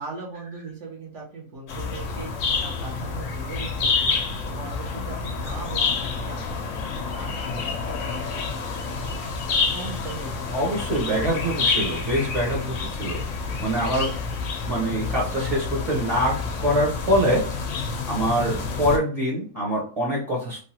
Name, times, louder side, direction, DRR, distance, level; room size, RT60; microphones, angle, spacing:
voice 1, 0.0-8.6 8.9-9.2 9.5-10.7 11.0-11.7, right 3 dB, 60° right, -3 dB, 1.3 m, -39 dB
sound 1, 1.7-19.0, left 4 dB, 70° left, 0.9 m, -28 dB
voice 2, 10.5-13.2 13.6-14.1 14.7-17.7 18.1-20.6, equal, 30° right, -4 dB, 1.0 m, -24 dB
3.3 x 2.3 x 2.8 m, 0.40 s
omnidirectional pair, 1.4 m